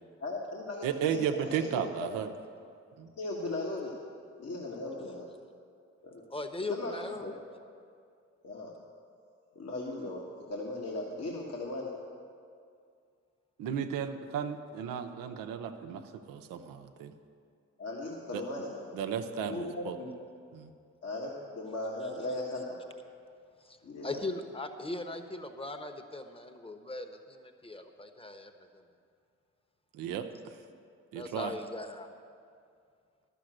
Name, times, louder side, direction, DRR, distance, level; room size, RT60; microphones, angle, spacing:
voice 1, 0.2-2.1 3.2-4.0 4.4-5.3 6.0-6.2 6.7-7.3 8.4-8.7 9.5-11.9 17.8-19.0 19.4-20.1 21.0-22.8 23.8-24.2, left 2 dB, 50° left, -3 dB, 1.6 m, -38 dB
voice 2, 0.8-2.3 3.0-3.1 13.6-16.0 16.3-17.1 18.3-18.4 18.9-20.0 20.5-20.7 29.9-30.5 31.1-31.5, right 8 dB, 80° right, 7 dB, 0.8 m, -34 dB
voice 3, 6.3-7.3 23.6-23.8 24.0-28.7 31.1-32.1, left 2 dB, 15° left, 7 dB, 1.2 m, -39 dB
11.5 x 7.0 x 7.8 m, 2.3 s
hypercardioid pair, 45°, 33 cm